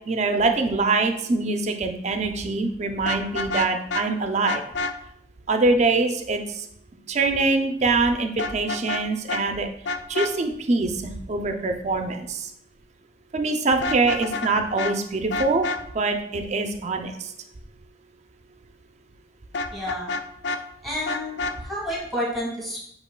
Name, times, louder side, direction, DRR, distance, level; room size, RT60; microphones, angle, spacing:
voice 1, 0.1-4.6 5.5-6.7 7.1-9.7 10.1-12.5 13.3-15.7 15.9-17.3, right 3 dB, 40° right, 5 dB, 0.4 m, -24 dB
Vehicle horn car horn honking, 3.0-4.1 4.4-4.9 8.4-9.0 9.3-9.4 9.8-10.3 13.7-14.5 14.8-14.9 15.3-15.8 19.5-20.6 21.0-21.6, left 3 dB, 70° left, 0.3 m, -28 dB
voice 2, 19.7-20.1 20.8-21.3 21.6-22.8, equal, ahead, -4 dB, 1.5 m, -30 dB
7.9 x 3.0 x 2.2 m, 0.72 s
head